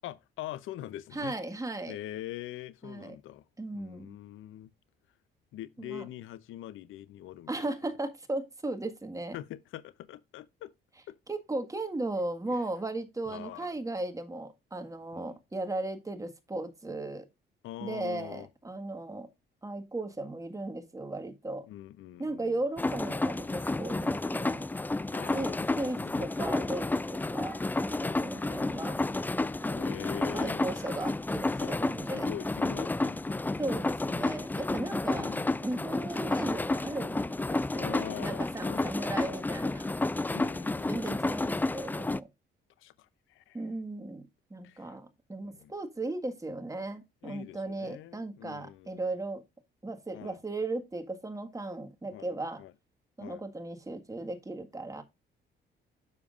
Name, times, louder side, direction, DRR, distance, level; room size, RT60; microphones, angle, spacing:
voice 1, 0.0-1.3 1.9-3.4 3.7-4.7 5.5-7.6 9.3-10.7 11.1-11.2 12.5-12.6 13.3-13.7 15.1-15.4 17.6-18.5 21.7-22.6 25.1-26.3 28.1-29.1 29.7-30.7 31.6-31.7 32.1-33.5 35.1-35.7 37.8-39.1 40.3-41.2 42.8-43.6 44.6-45.0 45.4-45.7 47.2-49.0 50.1-50.4 52.1-52.3 52.6-52.7 53.2-53.4, left 13 dB, 85° left, 0.7 m, -44 dB
voice 2, 1.1-2.0 2.8-3.2 3.6-4.1 5.8-6.0 7.5-9.4 11.3-17.3 17.8-19.3 19.6-21.7 22.2-24.7 25.3-29.0 29.6-29.9 30.3-32.3 33.6-35.3 35.6-39.9 40.9-42.3 43.5-49.4 49.8-52.6 53.2-55.0, right 2 dB, 15° right, 1.6 m, -36 dB
sound 1, 22.8-42.2, left 2 dB, 10° left, 0.3 m, -31 dB
9.6 x 7.0 x 2.5 m
cardioid pair, 90°, 20 cm